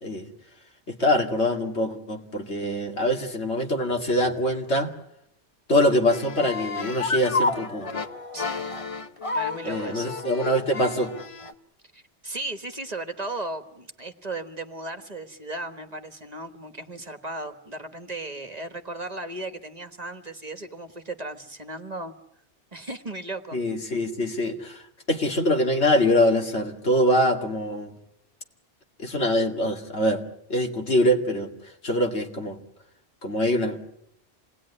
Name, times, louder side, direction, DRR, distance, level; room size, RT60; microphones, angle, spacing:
voice 1, 0.9-4.9 5.7-8.0 9.6-11.1 23.5-24.8 25.1-27.9 29.0-30.2 30.5-31.5 31.8-32.6 33.2-33.8, left 1 dB, 75° left, 3 dB, 2.7 m, -24 dB
sound 1, 6.1-11.5, left 3 dB, 30° left, 1.1 m, -30 dB
voice 2, 8.3-8.7 9.3-10.1 11.9-22.1 22.7-23.6, right 2 dB, 35° right, 7 dB, 1.5 m, -36 dB
27.0 x 19.5 x 9.8 m, 0.78 s
omnidirectional pair, 1.1 m